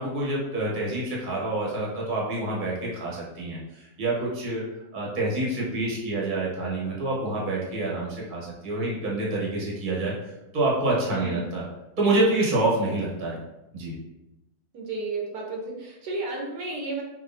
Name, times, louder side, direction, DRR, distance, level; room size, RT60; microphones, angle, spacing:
voice 1, 0.0-4.6 4.9-10.1 10.5-11.6 12.0-13.4 13.7-13.9, right 2 dB, 35° right, -4 dB, 1.1 m, -27 dB
voice 2, 11.1-11.4 14.7-17.0, right 3 dB, 90° right, -1 dB, 1.5 m, -32 dB
5.2 x 2.8 x 2.6 m, 0.95 s
omnidirectional pair, 1.7 m